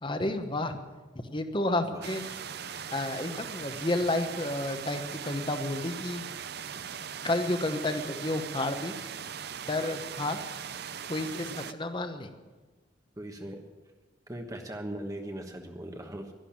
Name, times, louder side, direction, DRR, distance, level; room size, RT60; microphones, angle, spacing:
voice 1, 0.0-0.8 1.2-2.4 2.6-6.3 7.2-8.9 9.7-10.4 11.1-12.3, left 2 dB, 25° left, 8 dB, 1.1 m, -31 dB
sound 1, 2.0-11.7, right 8 dB, 55° right, 0.6 m, -40 dB
voice 2, 13.2-13.6 14.3-16.3, right 1 dB, 20° right, 3 dB, 1.2 m, -39 dB
12.0 x 11.5 x 8.7 m, 1.3 s
head